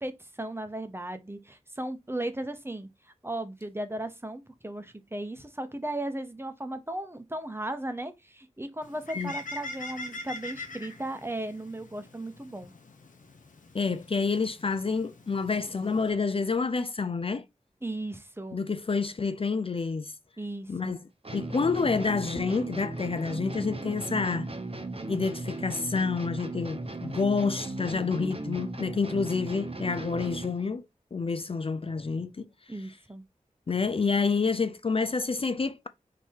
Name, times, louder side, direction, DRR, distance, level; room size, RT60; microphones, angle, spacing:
voice 1, 0.0-12.7 17.8-18.6 20.4-20.9 32.7-33.2, right 1 dB, 20° right, 0.9 m, -36 dB
Bird, 8.8-16.1, left 2 dB, 75° left, 1.0 m, -43 dB
voice 2, 13.7-17.5 18.5-20.1 20.7-21.0 21.3-24.5 25.1-30.8 31.1-32.5 33.7-35.9, left 4 dB, 45° left, 0.4 m, -28 dB
sound 1, 21.2-30.7, right 2 dB, 45° right, 1.0 m, -37 dB
3.7 x 2.8 x 4.6 m
wide cardioid pair, 50°, 13 cm